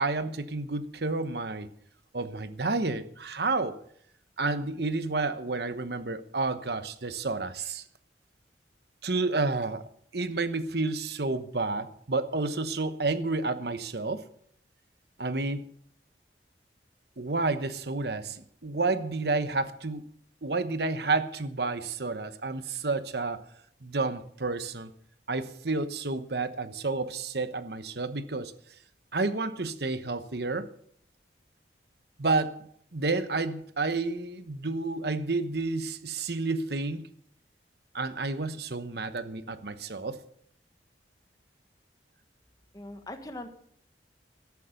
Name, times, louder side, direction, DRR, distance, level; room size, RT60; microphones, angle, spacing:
voice 1, 0.0-1.7 2.1-3.8 4.4-7.8 9.0-9.8 10.1-14.2 15.2-15.6 17.2-20.0 20.4-23.4 23.8-24.9 25.3-28.5 29.1-30.7 32.2-32.7 32.9-37.1 37.9-40.2, right 3 dB, 65° right, 11 dB, 1.1 m, -30 dB
voice 2, 42.7-43.5, left 1 dB, 20° left, 7 dB, 1.5 m, -40 dB
13.5 x 11.0 x 6.5 m, 0.65 s
head